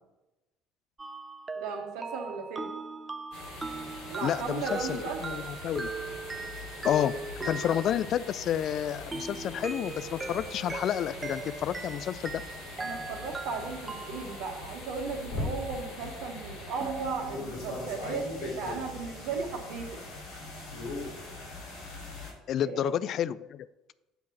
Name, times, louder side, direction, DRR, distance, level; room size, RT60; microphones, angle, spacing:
sound 1, 1.0-8.5 9.1-14.8 16.8-17.6, right 4 dB, 20° right, 0.6 m, -40 dB
voice 1, 1.5-2.7 4.1-5.4 12.8-20.0 22.6-22.9, right 4 dB, 60° right, 3 dB, 1.4 m, -36 dB
sound 2, 3.3-22.3, left 2 dB, 65° left, 2.9 m, -41 dB
voice 2, 4.2-5.9 6.8-7.1 7.4-12.4 22.5-23.7, left 10 dB, 45° left, 16 dB, 0.3 m, -30 dB
7.8 x 4.6 x 6.0 m, 1.0 s
figure-of-eight pair, 60°, 0 cm